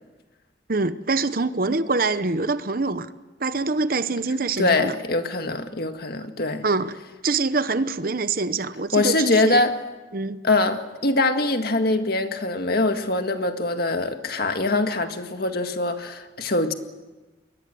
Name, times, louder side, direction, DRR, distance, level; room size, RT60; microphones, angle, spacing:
voice 1, 0.7-3.1 3.4-4.9 6.6-7.0 7.2-9.6 10.1-10.4, right 3 dB, 45° right, 0.9 m, -25 dB
voice 2, 4.6-6.6 8.9-9.8 10.4-16.7, left 2 dB, 50° left, 1.9 m, -23 dB
28.5 x 21.5 x 7.7 m
head